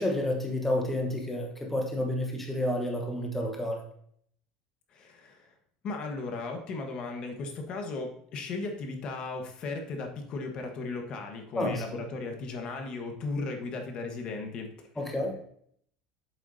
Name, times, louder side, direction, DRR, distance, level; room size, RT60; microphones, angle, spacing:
voice 1, 0.0-3.8 11.5-11.8 15.0-15.4, left 1 dB, 10° left, 0 dB, 1.2 m, -30 dB
voice 2, 4.9-5.5 5.8-15.2, left 3 dB, 45° left, 4 dB, 1.4 m, -36 dB
8.3 x 7.6 x 2.8 m, 0.66 s
cardioid pair, 140°, 2 cm